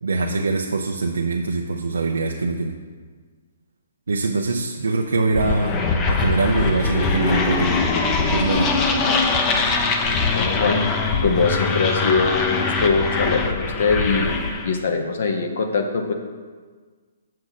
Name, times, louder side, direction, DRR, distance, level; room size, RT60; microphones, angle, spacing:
voice 1, 0.0-2.7 4.1-7.8 8.3-8.8, right 3 dB, 85° right, 1 dB, 0.6 m, -23 dB
sound 1, 5.3-14.7, left 4 dB, 25° left, 0.6 m, -22 dB
voice 2, 10.3-10.8 11.2-14.3 14.6-16.1, left 4 dB, 65° left, 4 dB, 1.0 m, -22 dB
7.1 x 6.5 x 4.1 m, 1.5 s
hypercardioid pair, 145°, 0 cm